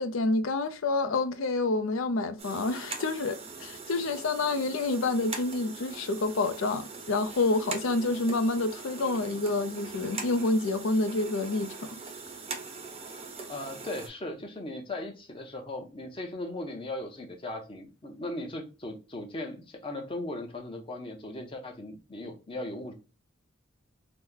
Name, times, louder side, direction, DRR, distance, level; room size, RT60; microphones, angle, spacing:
voice 1, 0.0-11.9, left 2 dB, 75° left, 0.5 m, -28 dB
cassette deck tape turn, 2.4-14.1, right 4 dB, 30° right, 0.6 m, -41 dB
voice 2, 13.5-22.9, left 1 dB, 25° left, 0.7 m, -38 dB
3.0 x 2.1 x 3.6 m
head